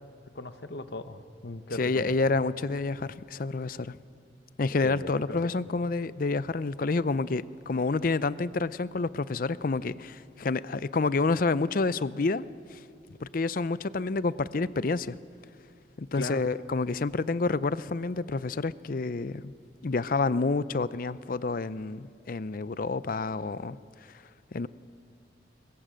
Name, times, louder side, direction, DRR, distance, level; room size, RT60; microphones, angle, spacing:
voice 1, 0.3-2.1 4.8-5.4 16.1-16.4, left 2 dB, 65° left, 10 dB, 1.0 m, -38 dB
voice 2, 1.8-4.0 4.6-12.4 12.7-12.8 13.2-15.2 16.0-19.5 19.8-23.8 24.5-24.7, left 3 dB, 50° left, 16 dB, 0.5 m, -28 dB
22.0 x 19.5 x 7.6 m, 2.3 s
head